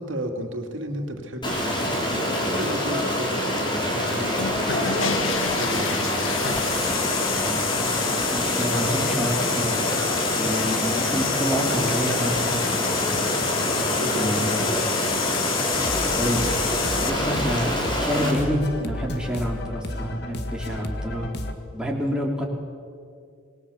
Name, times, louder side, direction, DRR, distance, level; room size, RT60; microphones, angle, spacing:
voice 1, 0.0-6.4 13.7-14.8, right 1 dB, 80° right, 3 dB, 2.7 m, -34 dB
Stream, 1.4-18.3, equal, 25° left, 3.8 m, -26 dB
sound 1, 4.3-17.1, left 8 dB, 80° left, 1.6 m, -29 dB
voice 2, 7.4-9.9 10.3-13.3 14.1-14.7 16.2-16.8 17.0-21.3 21.7-22.4, equal, 5° right, -1 dB, 3.0 m, -28 dB
sound 2, 8.0-21.5, left 1 dB, 55° left, 1.8 m, -35 dB
26.5 x 21.0 x 7.2 m, 2.3 s
head